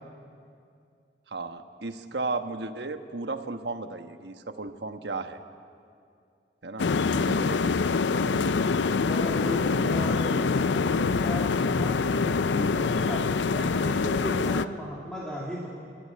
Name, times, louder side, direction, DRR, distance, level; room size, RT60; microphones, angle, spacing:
voice 1, 1.3-5.4 6.6-7.8 8.1-8.5, right 3 dB, 70° right, 7 dB, 1.2 m, -35 dB
sound 1, 6.8-14.7, left 4 dB, 90° left, 0.5 m, -25 dB
voice 2, 9.0-15.7, equal, 5° left, -6 dB, 2.6 m, -35 dB
29.0 x 13.5 x 8.7 m, 2.4 s
head